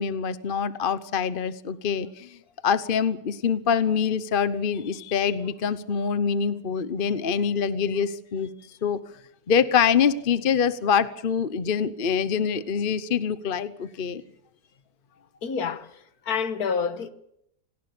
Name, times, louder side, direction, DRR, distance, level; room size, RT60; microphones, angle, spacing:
voice 1, 0.0-2.4 2.6-8.5 8.8-9.0 9.5-14.2, left 7 dB, 40° left, 0.9 m, -25 dB
voice 2, 15.4-17.1, left 6 dB, 60° left, 1.8 m, -28 dB
27.0 x 18.5 x 6.8 m
omnidirectional pair, 1.8 m